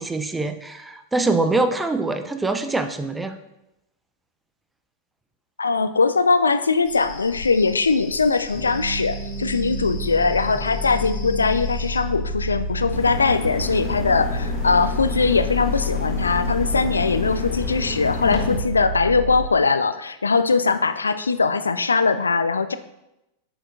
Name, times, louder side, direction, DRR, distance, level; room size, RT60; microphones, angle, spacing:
voice 1, 0.0-3.4, right 3 dB, 10° right, 8 dB, 0.5 m, -24 dB
voice 2, 5.6-22.8, left 4 dB, 75° left, 11 dB, 0.3 m, -21 dB
sound 1, 6.8-12.0, left 3 dB, 55° left, 2.6 m, -40 dB
sound 2, 8.5-19.4, left 1 dB, 80° right, 1.6 m, -30 dB
sound 3, 12.9-18.6, left 2 dB, 30° left, 1.6 m, -29 dB
7.8 x 6.2 x 2.6 m, 0.89 s
figure-of-eight pair, 90°, 0 cm